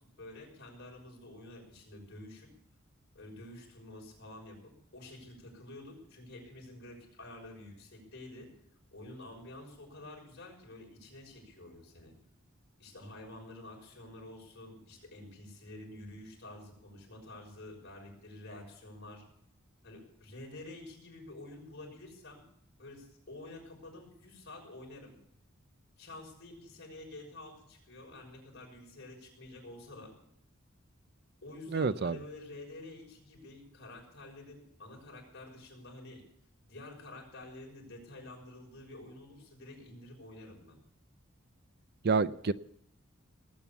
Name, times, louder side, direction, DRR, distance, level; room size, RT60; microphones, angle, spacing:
voice 1, 0.2-2.5 3.1-8.5 8.9-12.1 12.8-19.2 19.8-22.4 22.8-25.2 26.0-30.1 31.4-36.2 36.7-40.8, left 2 dB, 55° left, 0 dB, 6.2 m, -49 dB
voice 2, 31.7-32.2 42.0-42.5, right 4 dB, 50° right, 15 dB, 0.5 m, -28 dB
19.0 x 8.9 x 7.1 m, 0.70 s
head